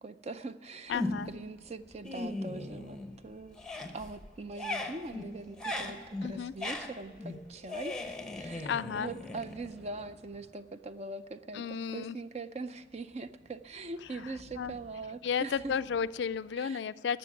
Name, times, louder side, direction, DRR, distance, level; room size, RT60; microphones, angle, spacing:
voice 1, 0.0-1.0 1.3-3.6 3.9-8.7 9.0-15.7 16.6-16.8, right 3 dB, 35° right, 12 dB, 0.5 m, -42 dB
voice 2, 0.9-1.3 6.2-6.5 8.6-9.1 11.5-12.2 14.6-14.7 15.2-17.2, left 7 dB, 70° left, 16 dB, 0.3 m, -33 dB
sound 1, 0.9-1.5 1.9-3.2 3.5-10.0, left 2 dB, 5° left, 0.8 m, -38 dB
Thunder, 7.1-7.8 8.4-8.5 8.7-16.5, equal, 80° right, 2.7 m, -60 dB
12.5 x 6.9 x 9.1 m, 1.5 s
head